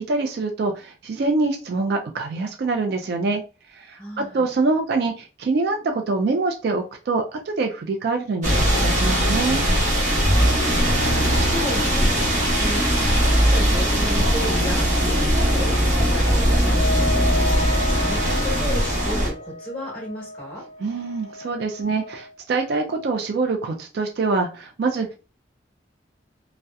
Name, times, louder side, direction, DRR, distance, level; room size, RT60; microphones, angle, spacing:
voice 1, 0.0-3.4 3.7-9.6 20.8-25.2, right 3 dB, 60° right, 3 dB, 0.3 m, -25 dB
voice 2, 4.0-4.5 10.4-20.6, left 1 dB, 5° left, -3 dB, 1.2 m, -34 dB
sound 1, 8.4-19.3, equal, 40° right, 1.0 m, -20 dB
Wind instrument woodwind instrument, 16.7-22.3, left 2 dB, 30° left, 0.4 m, -32 dB
2.7 x 2.0 x 2.2 m, 0.33 s
head